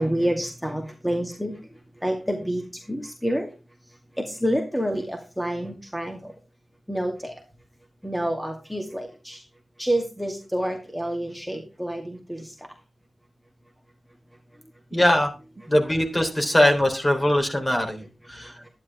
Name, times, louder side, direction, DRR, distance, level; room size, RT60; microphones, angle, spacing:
voice 1, 0.0-1.5 2.0-3.5 4.2-6.3 6.9-7.3 8.0-9.4 9.8-12.5, equal, ahead, 3 dB, 2.4 m, -28 dB
voice 2, 14.9-15.3 15.7-18.5, left 1 dB, 25° left, 4 dB, 3.5 m, -21 dB
12.0 x 10.5 x 3.5 m, 0.30 s
cardioid pair, 65°, 0 cm